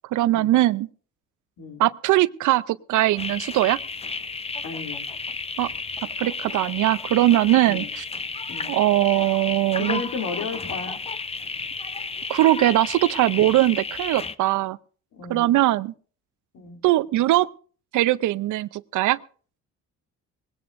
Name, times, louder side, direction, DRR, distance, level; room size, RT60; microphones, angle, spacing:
voice 1, 0.1-0.9 1.8-3.8 5.6-5.7 6.2-8.0 8.7-10.0 12.3-14.8 15.3-15.9 16.8-17.5 17.9-19.2, right 15 dB, 80° right, 0.6 m, -21 dB
sound 1, 3.2-14.4, left 4 dB, 20° left, 0.6 m, -32 dB
voice 2, 4.6-5.1 7.6-7.9 8.5-8.7 9.8-11.0 15.1-15.5 16.5-16.8, left 5 dB, 75° left, 2.7 m, -33 dB
20.0 x 17.0 x 2.6 m
cardioid pair, 90°, 30 cm